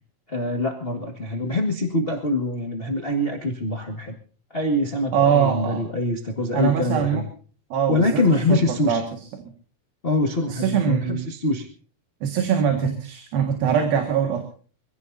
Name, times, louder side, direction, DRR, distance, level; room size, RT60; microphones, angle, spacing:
voice 1, 0.3-4.1 4.5-7.2 7.9-9.0 10.0-11.7, left 2 dB, 30° left, 3 dB, 1.1 m, -24 dB
voice 2, 5.1-5.8 6.5-7.2 7.7-9.0 10.5-11.3 12.2-14.4, right 7 dB, 85° right, 4 dB, 3.6 m, -22 dB
25.5 x 16.5 x 2.7 m, 0.41 s
omnidirectional pair, 4.1 m